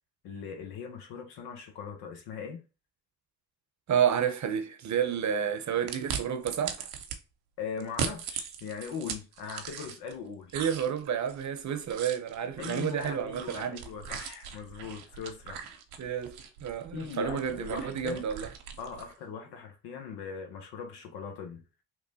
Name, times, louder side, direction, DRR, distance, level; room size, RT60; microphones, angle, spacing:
voice 1, 0.2-2.6 7.6-10.6 12.6-15.6 16.9-18.3 18.8-21.6, left 6 dB, 90° left, 0.9 m, -40 dB
voice 2, 3.9-6.9 10.5-13.9 16.0-18.5, right 8 dB, 50° right, 0.7 m, -30 dB
sound 1, 5.9-7.2 7.8-10.2 10.5-19.1, right 7 dB, 85° right, 0.6 m, -40 dB
3.0 x 2.5 x 4.0 m
supercardioid pair, 55°, 37 cm